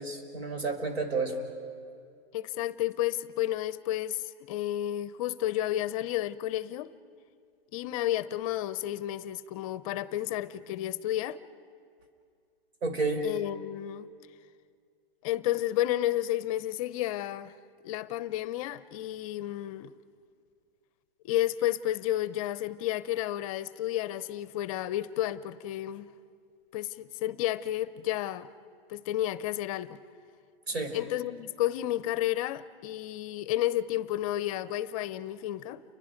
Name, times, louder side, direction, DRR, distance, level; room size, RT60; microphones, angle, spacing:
voice 1, 0.0-1.4 12.8-13.2 30.7-31.0, right 3 dB, 90° right, 4.5 m, -31 dB
voice 2, 2.3-6.9 7.7-11.4 13.2-14.1 15.2-17.5 17.8-19.9 21.2-26.1 26.7-28.5 28.9-30.0 30.9-35.8, left 13 dB, 35° left, 0.6 m, -31 dB
30.0 x 24.0 x 5.1 m
hypercardioid pair, 140°, 30 cm